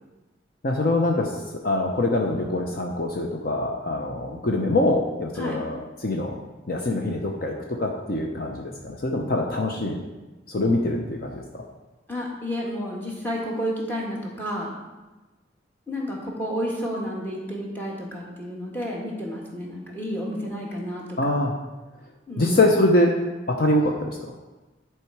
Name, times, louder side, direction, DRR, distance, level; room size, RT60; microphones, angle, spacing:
voice 1, 0.6-6.3 6.7-10.0 10.5-11.6 21.2-21.5 22.4-23.1 23.5-24.2, left 2 dB, 50° left, 1 dB, 0.7 m, -24 dB
voice 2, 12.1-14.7 15.9-21.4 22.3-22.6, equal, 10° left, -3 dB, 1.6 m, -31 dB
10.0 x 4.6 x 4.7 m, 1.1 s
head